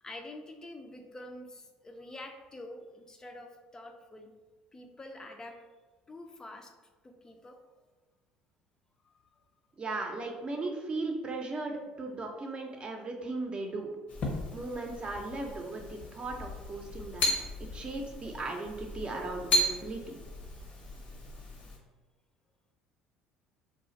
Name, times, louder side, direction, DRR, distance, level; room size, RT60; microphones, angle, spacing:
voice 1, 0.0-4.3 4.7-5.6 6.1-6.7 7.0-7.6 9.0-9.4, left 1 dB, 20° left, 4 dB, 0.5 m, -47 dB
voice 2, 9.8-13.9 14.5-17.3 17.7-20.2, right 2 dB, 35° right, 1 dB, 0.7 m, -37 dB
sound 1, 14.1-21.8, left 1 dB, 55° left, 0.8 m, -35 dB
2.4 x 2.3 x 4.0 m, 1.2 s
hypercardioid pair, 70°, 3 cm